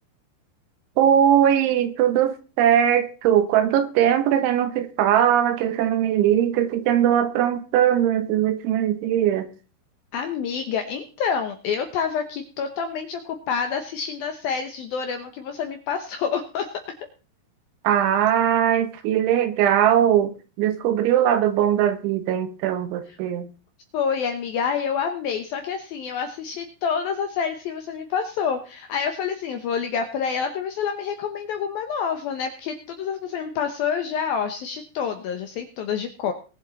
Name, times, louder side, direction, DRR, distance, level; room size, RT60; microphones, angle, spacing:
voice 1, 1.0-9.5 17.9-23.5, right 10 dB, 80° right, 3.5 m, -20 dB
voice 2, 10.1-16.7 23.9-36.3, left 6 dB, 75° left, 2.3 m, -27 dB
21.0 x 7.2 x 4.1 m
omnidirectional pair, 5.5 m